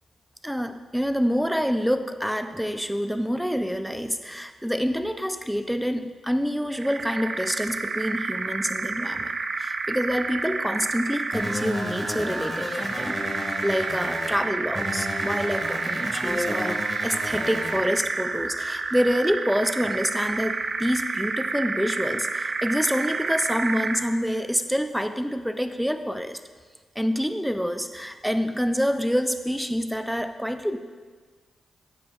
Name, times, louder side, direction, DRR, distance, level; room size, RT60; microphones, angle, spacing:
voice 1, 0.4-26.4 27.0-30.8, equal, ahead, 9 dB, 0.6 m, -27 dB
sound 1, 6.7-24.1, right 4 dB, 55° right, 0.6 m, -30 dB
sound 2, 11.3-14.3 14.7-17.8, left 1 dB, 30° left, 2.0 m, -33 dB
11.5 x 7.6 x 2.5 m, 1.5 s
supercardioid pair, 50°, 0 cm